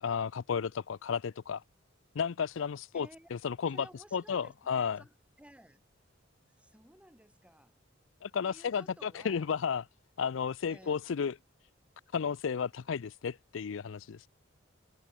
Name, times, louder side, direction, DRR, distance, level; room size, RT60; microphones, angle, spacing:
voice 1, 0.0-1.6 2.1-3.9 4.1-5.0 8.2-9.8 10.2-11.3 12.1-14.3, left 6 dB, 85° left, 0.5 m, -33 dB
voice 2, 2.9-3.3 3.7-5.8 6.6-7.8 8.4-9.5 10.7-11.0, right 1 dB, 5° right, 4.7 m, -56 dB
head